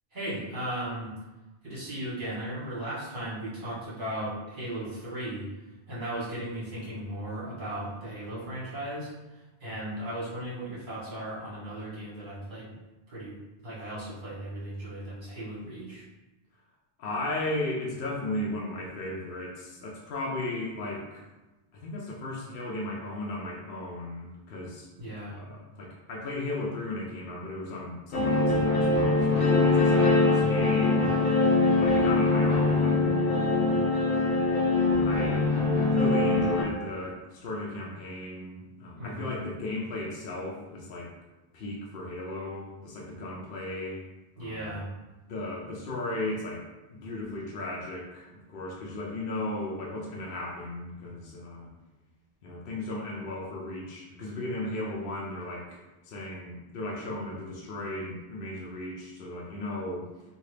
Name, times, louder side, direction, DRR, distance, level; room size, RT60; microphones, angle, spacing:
voice 1, 0.1-1.1 1.6-5.5 5.9-12.7 13.1-13.4 13.6-16.0 25.0-25.4 30.0-30.3 39.0-39.4 44.4-44.9, right 1 dB, 50° right, -9 dB, 1.6 m, -36 dB
voice 2, 17.0-21.2 21.7-24.9 25.2-31.1 31.7-33.8 34.8-35.5 35.8-41.1 41.5-44.0 44.4-44.7 45.3-51.7 52.4-55.8 56.0-60.1, left 2 dB, 65° left, -3 dB, 0.8 m, -36 dB
sound 1, 28.1-36.6, left 3 dB, 30° left, 0.6 m, -23 dB
2.8 x 2.7 x 3.2 m, 1.1 s
omnidirectional pair, 1.1 m